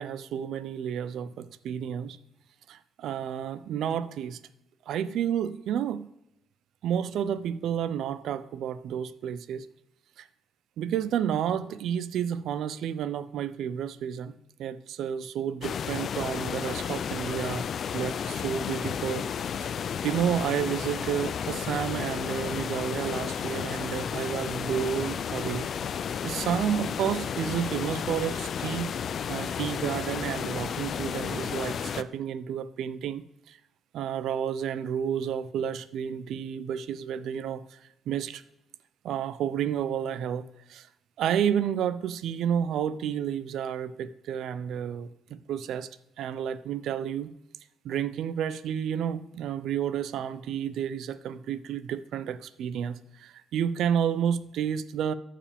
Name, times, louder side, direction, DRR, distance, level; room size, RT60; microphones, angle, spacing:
voice 1, 0.0-2.2 2.7-4.4 4.9-6.1 6.8-9.7 10.2-10.3 10.8-17.7 17.9-19.3 19.6-19.7 20.0-25.7 26.2-28.9 29.3-33.6 33.9-37.8 38.1-38.4 39.0-40.9 41.2-45.9 46.2-47.3 47.8-55.1, right 9 dB, 75° right, 15 dB, 0.5 m, -31 dB
sound 1, 15.6-32.0, left 7 dB, 60° left, 0.3 m, -32 dB
14.0 x 4.9 x 3.5 m, 0.86 s
cardioid pair, 90°, 0 cm